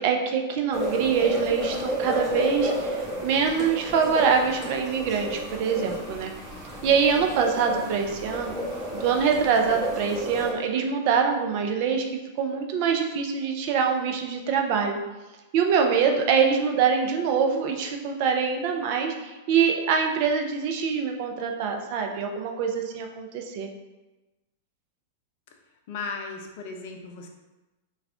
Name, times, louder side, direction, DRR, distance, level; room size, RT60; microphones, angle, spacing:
voice 1, 0.0-6.3 6.8-8.5 8.9-15.0 15.5-23.7, right 6 dB, 50° right, 3 dB, 0.4 m, -24 dB
sound 1, 0.7-10.5, equal, 15° right, 1.2 m, -32 dB
voice 2, 25.9-27.3, left 4 dB, 55° left, 3 dB, 0.5 m, -36 dB
3.4 x 2.3 x 3.3 m, 1.1 s
figure-of-eight pair, 100°, 0 cm